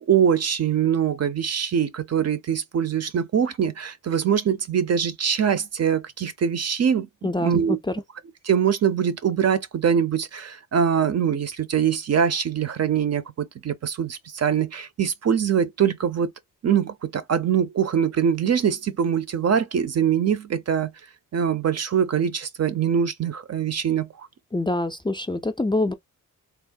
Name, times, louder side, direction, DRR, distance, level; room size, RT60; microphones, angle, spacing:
voice 1, 0.1-7.1 7.4-7.8 8.4-16.3 16.6-20.9 21.3-24.3, right 8 dB, 50° right, 0.6 m, -23 dB
voice 2, 7.2-7.8 24.5-25.9, left 2 dB, 15° left, 0.4 m, -25 dB
3.5 x 2.0 x 2.3 m
cardioid pair, 80°, 34 cm